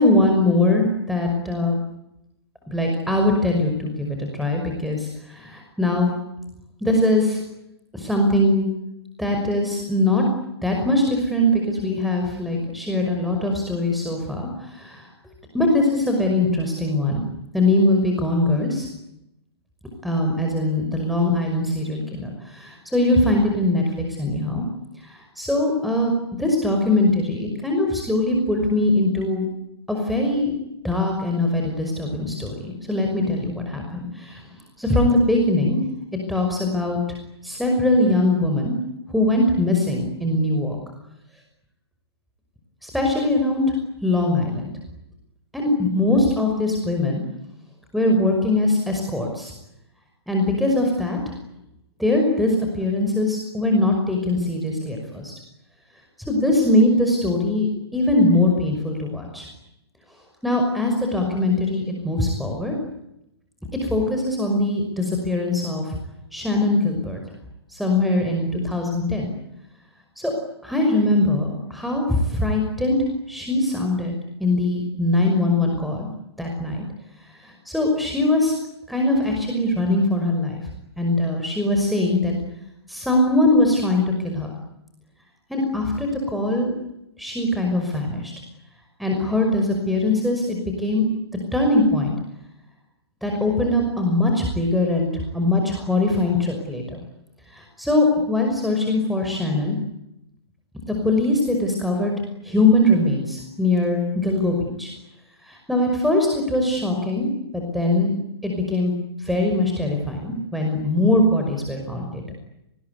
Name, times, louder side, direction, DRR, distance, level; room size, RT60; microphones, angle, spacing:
voice 1, 0.0-1.8 2.7-6.1 6.8-7.4 7.9-8.7 9.2-10.2 10.6-15.1 15.5-17.2 17.5-18.9 20.0-24.6 25.0-26.1 26.4-29.5 29.9-30.5 30.8-34.4 34.8-35.8 36.3-37.0 37.4-38.8 39.1-40.8 42.8-43.6 44.0-44.7 45.5-47.2 47.9-49.5 50.3-51.3 52.0-55.3 56.3-59.5 60.4-62.7 63.8-65.9 66.3-67.2 67.7-69.3 70.2-70.3 70.6-74.1 74.4-76.1 76.4-76.8 77.3-78.5 78.9-80.6 81.0-82.3 82.9-84.5 85.5-86.8 87.2-88.3 89.0-91.1 91.5-92.2 93.2-97.0 97.5-99.8 100.9-102.1 102.4-104.9 105.4-108.1 108.4-108.9 109.2-112.3, left 2 dB, ahead, 2 dB, 5.8 m, -21 dB
30.0 x 20.5 x 9.7 m, 0.85 s
figure-of-eight pair, 120°, 14 cm